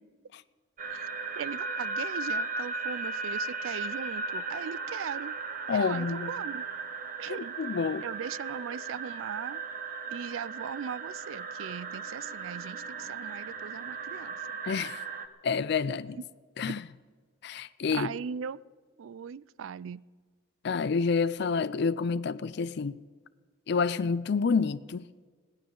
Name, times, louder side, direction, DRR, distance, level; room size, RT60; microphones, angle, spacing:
sound 1, 0.8-15.3, right 4 dB, 45° right, 1.0 m, -36 dB
voice 1, 1.4-5.3 5.7-6.6 7.2-7.5 8.0-9.6 10.1-14.3 17.9-18.6 19.0-20.0, right 7 dB, 90° right, 0.4 m, -39 dB
voice 2, 5.7-6.4 7.3-8.1 14.6-15.0 15.4-16.2 16.6-16.9 17.4-18.1 20.6-23.0 23.7-25.1, left 5 dB, 60° left, 0.4 m, -29 dB
21.0 x 16.0 x 3.9 m
head